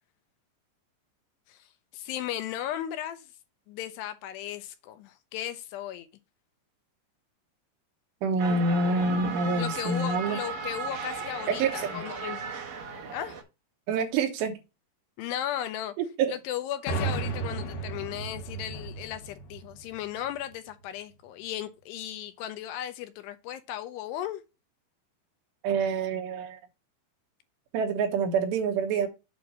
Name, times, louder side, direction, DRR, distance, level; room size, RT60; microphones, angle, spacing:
voice 1, 1.9-3.3 3.7-6.1 9.6-12.4 13.1-13.4 15.2-15.9 16.3-24.4, left 11 dB, 80° left, 2.7 m, -36 dB
voice 2, 8.2-10.4 11.5-12.0 13.9-14.6 16.0-16.3 25.6-26.6 27.7-29.1, right 4 dB, 80° right, 3.4 m, -27 dB
sound 1, 8.4-13.4, right 5 dB, 55° right, 2.0 m, -36 dB
sound 2, 16.9-20.5, right 3 dB, 65° left, 2.5 m, -34 dB
8.3 x 3.1 x 6.1 m
omnidirectional pair, 5.0 m